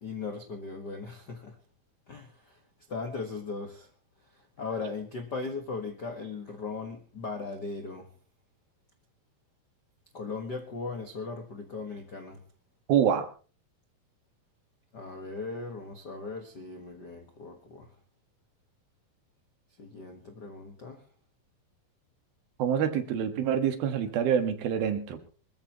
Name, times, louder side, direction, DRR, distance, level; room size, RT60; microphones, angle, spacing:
voice 1, 0.0-1.6 2.1-2.6 2.9-3.9 4.2-8.1 10.1-12.4 14.9-17.9 19.8-21.0, left 4 dB, 80° left, 0.9 m, -38 dB
voice 2, 12.9-13.3 22.6-25.2, right 8 dB, 75° right, 3.3 m, -26 dB
25.5 x 14.0 x 3.0 m
omnidirectional pair, 4.5 m